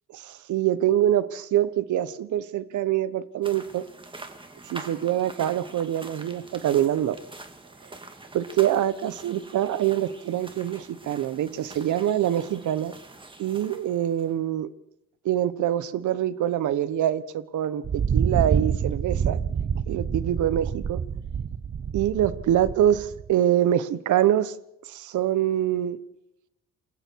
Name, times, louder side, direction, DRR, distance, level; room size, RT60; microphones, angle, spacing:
voice 1, 0.1-3.9 4.6-7.2 8.3-12.9 13.4-14.7 15.2-19.4 19.9-21.0 21.9-24.6 24.8-26.0, right 11 dB, 75° right, 1.2 m, -25 dB
sound 1, 3.4-14.3, right 2 dB, 15° right, 2.6 m, -45 dB
Thunder, 17.8-23.3, right 7 dB, 35° right, 1.0 m, -27 dB
28.0 x 21.0 x 4.7 m
cardioid pair, 90°, 30 cm